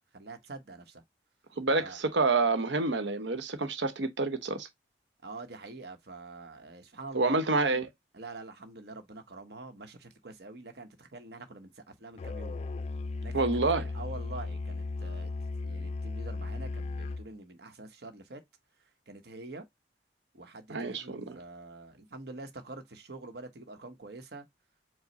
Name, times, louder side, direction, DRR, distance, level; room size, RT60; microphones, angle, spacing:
voice 1, 0.1-1.0 1.8-2.0 5.2-7.4 8.1-12.7 13.2-15.3 15.6-18.4 19.1-19.6 20.3-24.5, right 2 dB, 65° right, 1.0 m, -46 dB
voice 2, 1.6-4.7 7.1-7.9 13.3-13.9 20.7-21.4, right 3 dB, 90° right, 1.0 m, -28 dB
Musical instrument, 12.2-17.3, left 3 dB, 40° left, 0.3 m, -36 dB
4.8 x 2.1 x 4.1 m
head